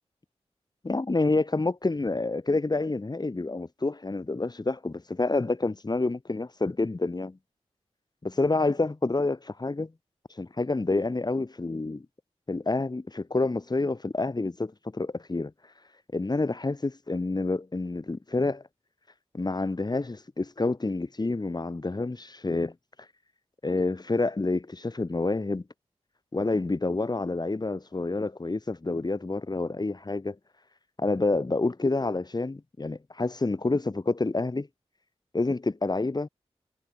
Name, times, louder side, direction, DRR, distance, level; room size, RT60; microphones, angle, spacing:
voice 1, 0.8-7.4 8.2-9.9 10.4-12.1 12.5-15.5 16.1-18.6 19.3-22.7 23.6-25.6 26.3-30.4 31.0-34.7 35.3-36.3, left 3 dB, 35° left, 4.6 m, -28 dB
cardioid pair, 60°, 11 cm